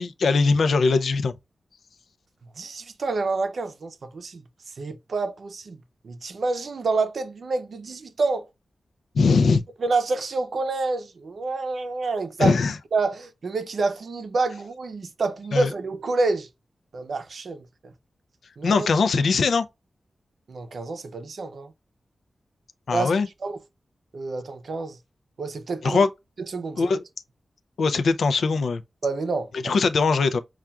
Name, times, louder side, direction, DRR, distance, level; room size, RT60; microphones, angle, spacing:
voice 1, 0.0-1.3 9.1-9.6 12.4-12.8 15.5-15.7 18.6-19.6 22.9-23.3 25.8-26.1 26.8-27.0 27.8-28.8 29.6-30.4, left 4 dB, 80° left, 0.4 m, -21 dB
voice 2, 2.6-4.4 4.8-8.5 9.8-12.5 12.9-16.5 16.9-17.9 18.6-18.9 20.5-21.7 22.9-23.1 23.4-23.6 24.1-25.0 25.4-26.0 26.5-26.9 29.0-29.8, right 3 dB, 60° right, 0.6 m, -28 dB
5.5 x 2.4 x 2.3 m
wide cardioid pair, 165°, 0 cm